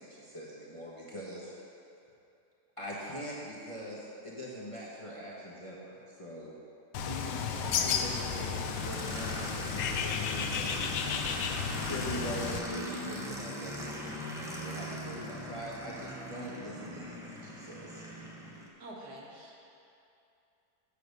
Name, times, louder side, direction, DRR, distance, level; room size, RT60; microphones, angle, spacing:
voice 1, 0.0-1.5 2.8-6.5 7.0-10.9 11.7-18.0, equal, 20° left, -6 dB, 1.0 m, -42 dB
Bird, 6.9-12.6, left 6 dB, 85° left, 1.2 m, -33 dB
voice 2, 7.3-7.7 15.3-15.7 18.8-19.6, right 1 dB, 70° right, -3 dB, 1.8 m, -48 dB
Aircraft, 7.5-18.7, equal, 5° right, 0.4 m, -41 dB
8.5 x 5.0 x 6.6 m, 2.7 s
omnidirectional pair, 1.8 m